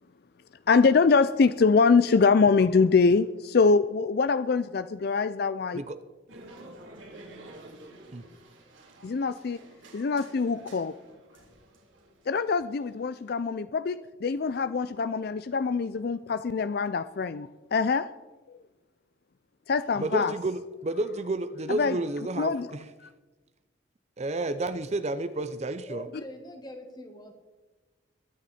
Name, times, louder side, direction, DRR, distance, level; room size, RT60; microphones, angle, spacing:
voice 1, 0.7-5.8 9.0-9.6 9.9-10.9 12.3-18.1 19.7-20.3 21.7-22.0 22.4-22.7, left 4 dB, 50° left, 13 dB, 0.4 m, -24 dB
sound 1, 6.3-13.4, right 1 dB, 75° right, 3.3 m, -50 dB
voice 2, 20.0-22.8 24.2-26.1, right 2 dB, 35° right, 12 dB, 0.5 m, -31 dB
voice 3, 25.9-27.3, left 1 dB, 20° left, 5 dB, 1.8 m, -43 dB
22.0 x 9.1 x 4.3 m, 1.2 s
head